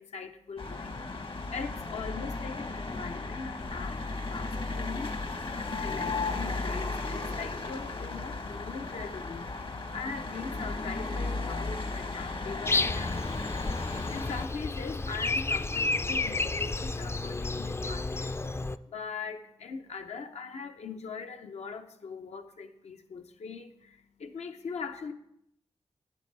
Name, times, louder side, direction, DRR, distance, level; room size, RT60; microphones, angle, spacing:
voice 1, 0.0-25.1, left 5 dB, 80° left, 6 dB, 0.7 m, -41 dB
sound 1, 0.6-14.5, left 3 dB, 50° left, 1.0 m, -35 dB
Breathing, 12.7-18.8, left 3 dB, 20° left, 0.3 m, -31 dB
9.4 x 7.7 x 3.3 m, 0.78 s
cardioid pair, 50°, 11 cm